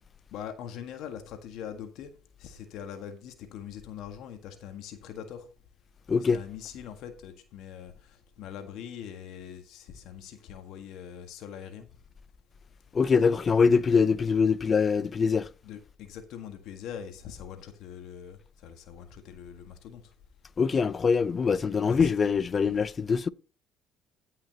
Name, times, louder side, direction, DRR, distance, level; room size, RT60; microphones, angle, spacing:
voice 1, 0.3-2.1 2.4-5.4 6.3-11.9 13.4-14.1 15.6-20.1 21.8-22.1, left 8 dB, 70° left, 1.6 m, -42 dB
voice 2, 12.9-15.5 20.6-23.3, left 5 dB, 40° left, 0.6 m, -23 dB
15.5 x 5.7 x 2.9 m
supercardioid pair, 70°, 0 cm